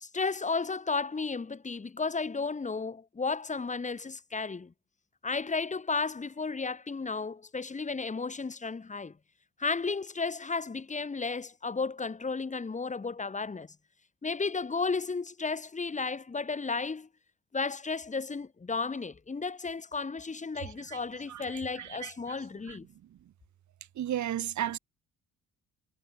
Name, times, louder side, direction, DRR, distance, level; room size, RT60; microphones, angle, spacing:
voice 1, 0.0-4.7 5.2-9.1 9.6-13.7 14.2-17.1 17.5-22.9, left 4 dB, 25° left, 1.9 m, -33 dB
voice 2, 21.3-22.4 22.7-22.8 24.0-24.8, right 11 dB, 70° right, 3.5 m, -34 dB
cardioid pair, 90°, 30 cm